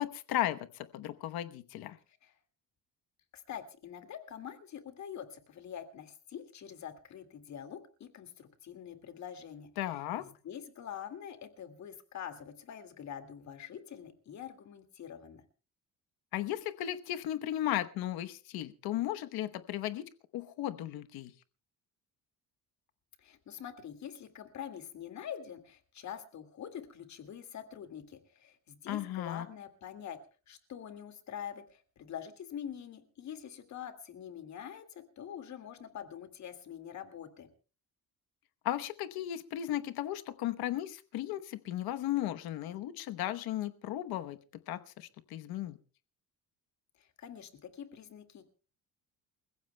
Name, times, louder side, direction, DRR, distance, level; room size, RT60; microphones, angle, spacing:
voice 1, 0.0-2.0 9.8-10.2 16.3-21.3 28.9-29.5 38.6-44.4 44.7-45.8, left 13 dB, 90° left, 10 dB, 1.0 m, -35 dB
voice 2, 3.3-9.7 10.2-15.4 23.2-30.2 30.5-37.5 47.0-48.4, left 9 dB, 50° left, 8 dB, 2.1 m, -45 dB
29.0 x 15.5 x 2.2 m, 0.35 s
cardioid pair, 150°, 36 cm